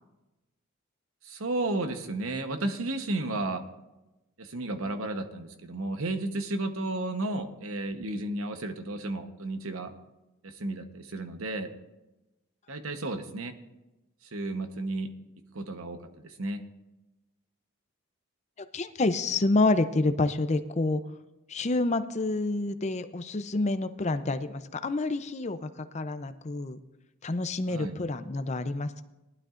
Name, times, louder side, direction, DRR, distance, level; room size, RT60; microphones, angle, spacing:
voice 1, 1.2-3.6 4.4-9.9 10.4-11.7 12.7-13.5 14.2-15.1 15.5-16.6 27.7-27.9, right 2 dB, 75° right, 7 dB, 1.0 m, -33 dB
voice 2, 18.6-21.0 21.5-26.8 27.2-29.0, left 2 dB, 30° left, 10 dB, 0.5 m, -28 dB
19.0 x 12.0 x 2.5 m, 1.0 s
head